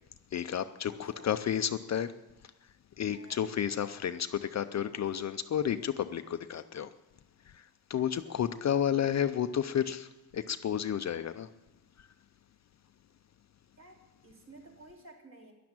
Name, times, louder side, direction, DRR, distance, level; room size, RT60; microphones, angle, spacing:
voice 1, 0.3-2.1 3.0-6.9 7.4-11.5 12.0-12.1, left 9 dB, 45° left, 10 dB, 0.5 m, -31 dB
voice 2, 3.1-3.4 8.0-8.4 13.8-14.0 14.2-15.5, right 2 dB, 40° right, 0 dB, 3.1 m, -54 dB
12.0 x 11.0 x 8.8 m, 1.0 s
wide cardioid pair, 160°, 39 cm